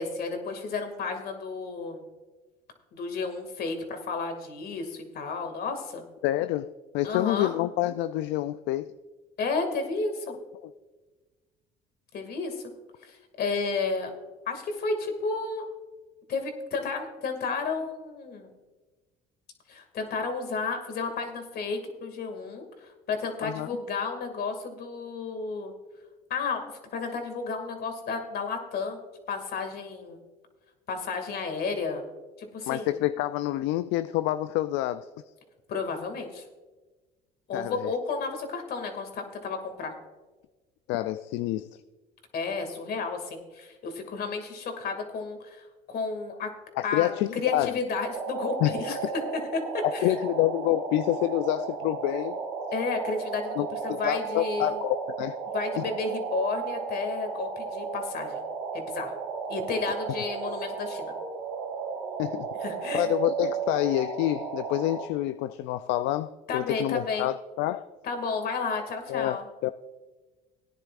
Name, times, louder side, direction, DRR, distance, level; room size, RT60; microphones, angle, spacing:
voice 1, 0.0-2.0 2.9-6.0 7.0-7.5 9.4-10.3 12.1-12.6 13.0-14.1 14.5-15.6 16.3-18.5 19.7-25.7 26.3-29.0 29.3-30.2 30.9-32.0 32.4-33.0 35.7-36.4 37.5-39.9 42.3-46.5 46.8-49.0 49.7-50.1 52.7-54.8 55.5-58.4 58.7-59.1 59.5-61.1 62.6-63.1 66.5-67.3 68.0-69.5, left 4 dB, 60° left, 5 dB, 2.2 m, -32 dB
voice 2, 6.2-8.9 23.4-23.7 32.7-35.1 37.5-37.9 40.9-41.7 46.8-47.8 48.6-49.1 49.8-52.4 53.6-55.4 55.8-55.9 62.2-62.5 62.9-67.9 69.1-69.4 69.6-69.7, left 15 dB, 80° left, 12 dB, 0.4 m, -27 dB
sound 1, 48.1-65.1, right 5 dB, 85° right, 2.0 m, -34 dB
18.0 x 10.0 x 2.5 m, 1.2 s
supercardioid pair, 85°, 19 cm